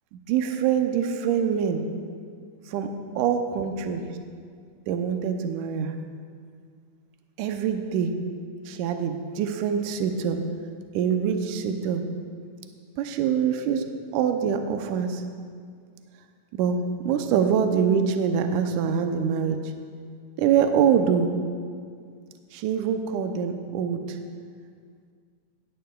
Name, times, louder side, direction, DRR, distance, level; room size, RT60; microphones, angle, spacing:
voice 1, 0.3-1.8 2.7-4.1 4.9-5.9 7.4-8.1 8.7-10.4 10.9-12.0 13.0-13.9 14.1-15.2 16.5-19.6 20.4-21.3 22.5-24.2, right 7 dB, 80° right, 6 dB, 2.1 m, -24 dB
17.0 x 13.5 x 2.3 m, 2.1 s
omnidirectional pair, 3.7 m